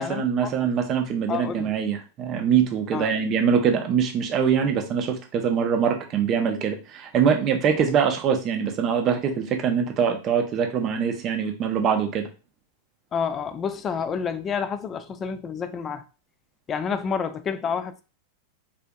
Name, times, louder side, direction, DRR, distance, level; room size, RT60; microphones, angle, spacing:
voice 1, 0.0-12.3, right 7 dB, 35° right, 0.6 m, -23 dB
voice 2, 1.3-1.7 2.9-3.1 13.1-16.0 16.7-18.0, left 6 dB, 25° left, 0.3 m, -29 dB
3.7 x 2.5 x 2.2 m
figure-of-eight pair, 90°, 0 cm